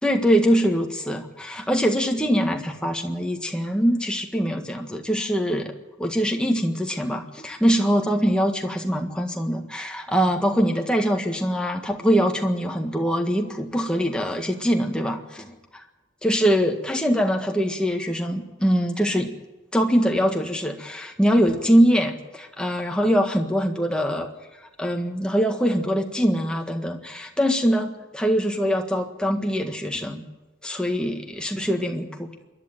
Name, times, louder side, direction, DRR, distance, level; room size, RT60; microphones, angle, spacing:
voice 1, 0.0-5.7 6.0-15.5 16.2-19.3 19.7-24.3 24.8-30.2 30.6-32.3, equal, 5° left, 3 dB, 1.7 m, -23 dB
26.5 x 11.5 x 9.1 m, 1.1 s
head